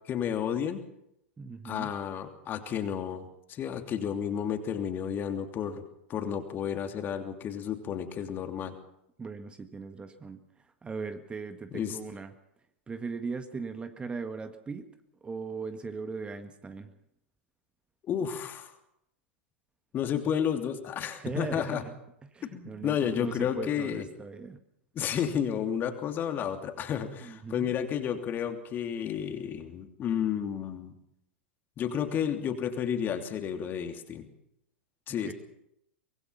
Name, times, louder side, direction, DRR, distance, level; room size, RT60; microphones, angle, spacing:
voice 1, 0.1-0.8 1.6-5.8 6.1-8.8 11.7-12.0 18.1-18.7 19.9-21.8 22.5-24.0 24.9-30.9 31.8-34.3 35.1-35.3, left 8 dB, 30° left, 6 dB, 2.9 m, -31 dB
voice 2, 1.4-1.9 9.2-10.4 10.8-12.3 12.9-14.9 15.2-16.9 21.2-21.9 22.2-24.6 27.2-27.7 35.2-35.3, right 4 dB, 15° right, 8 dB, 1.7 m, -38 dB
24.5 x 21.5 x 5.8 m, 0.78 s
figure-of-eight pair, 90°, 6 cm